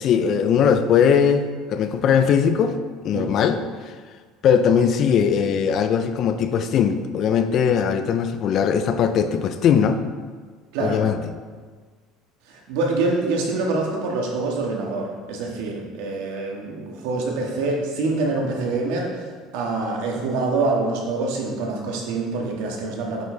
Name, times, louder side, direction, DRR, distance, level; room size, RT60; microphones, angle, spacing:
voice 1, 0.0-2.8 3.0-3.6 4.4-10.0 10.8-11.2, left 7 dB, 40° left, 9 dB, 0.5 m, -20 dB
voice 2, 12.5-23.2, right 3 dB, 90° right, -1 dB, 1.7 m, -25 dB
9.0 x 5.3 x 4.0 m, 1.5 s
cardioid pair, 160°, 0 cm